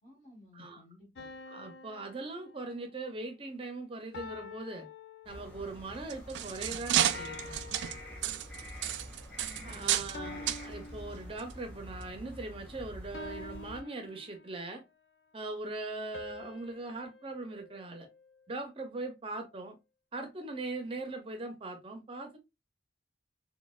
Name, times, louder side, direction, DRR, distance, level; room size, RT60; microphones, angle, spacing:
voice 1, 0.0-1.3 9.5-10.3, left 2 dB, 40° left, 1.8 m, -57 dB
sound 1, 1.2-3.1 4.1-5.8 7.1-8.7 10.1-11.8 13.1-14.8 16.1-18.5, left 4 dB, 75° left, 0.4 m, -48 dB
voice 2, 1.5-4.9 5.3-7.5 9.6-14.8 15.3-18.1 18.5-19.8 20.1-22.4, right 2 dB, 30° right, 0.5 m, -40 dB
sound 2, 5.2-13.8, left 1 dB, 10° left, 2.0 m, -47 dB
sound 3, 5.9-10.2 10.5-10.6 11.4-11.5 12.0-12.1, right 11 dB, 85° right, 0.3 m, -32 dB
4.0 x 2.1 x 2.3 m
head